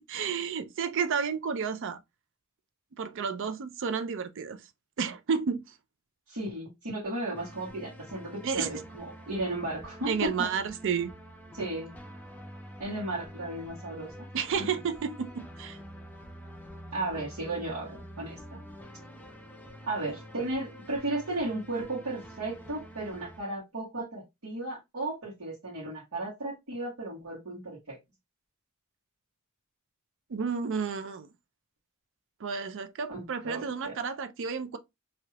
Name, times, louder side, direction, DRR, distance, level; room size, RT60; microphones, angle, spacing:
voice 1, 0.0-2.0 3.0-4.6 5.0-5.6 8.4-8.7 10.1-11.1 14.3-15.8 30.3-31.3 32.4-34.8, right 6 dB, 60° right, 0.4 m, -31 dB
voice 2, 6.3-10.5 11.5-11.9 12.8-14.3 16.9-18.6 19.8-28.0 33.1-34.0, right 2 dB, 85° right, 1.4 m, -35 dB
sound 1, 7.3-23.4, equal, 10° left, 0.5 m, -47 dB
3.2 x 2.8 x 2.3 m
head